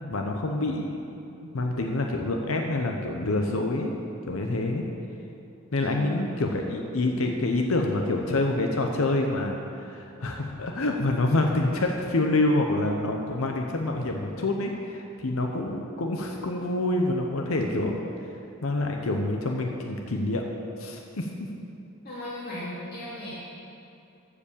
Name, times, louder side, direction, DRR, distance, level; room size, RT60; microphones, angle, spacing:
voice 1, 0.0-1.0 1.5-3.9 4.3-4.8 5.7-18.0 18.6-20.4 20.8-21.3, left 2 dB, 70° left, 2 dB, 0.8 m, -27 dB
voice 2, 5.8-6.8 22.0-23.3, left 1 dB, 45° left, -9 dB, 2.2 m, -37 dB
14.5 x 5.0 x 6.7 m, 2.8 s
head